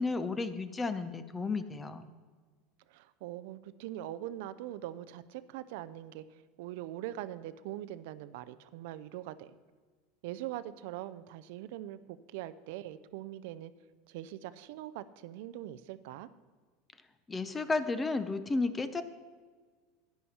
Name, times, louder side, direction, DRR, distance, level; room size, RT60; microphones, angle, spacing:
voice 1, 0.0-2.1 17.3-19.0, left 3 dB, 15° left, 12 dB, 0.7 m, -32 dB
voice 2, 2.9-6.2 6.6-9.5 10.2-13.7 14.1-16.3, right 13 dB, 70° right, 15 dB, 0.5 m, -42 dB
11.0 x 10.5 x 4.3 m, 1.5 s
supercardioid pair, 140°, 0 cm